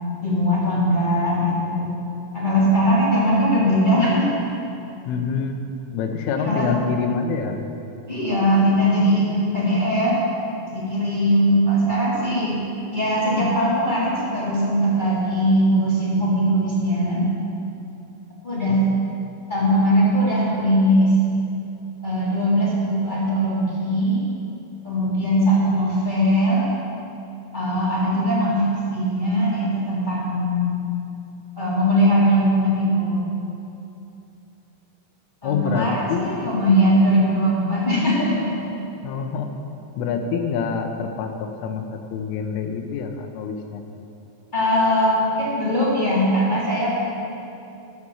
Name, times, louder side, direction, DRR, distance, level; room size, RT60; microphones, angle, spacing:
voice 1, 0.2-1.8 2.3-4.3 6.4-6.7 8.1-10.2 10.7-12.5 12.9-17.2 18.4-18.8 19.5-21.2 22.0-24.2 24.8-26.6 27.5-30.7 31.5-33.2 35.4-36.0 36.4-38.6 44.5-46.9, equal, 20° left, -8 dB, 1.4 m, -20 dB
voice 2, 5.1-5.5 5.9-7.6 18.7-18.9 35.4-36.4 39.0-39.5 40.0-43.8, left 5 dB, 80° left, 5 dB, 3.3 m, -26 dB
12.5 x 9.9 x 7.2 m, 2.8 s
omnidirectional pair, 6.0 m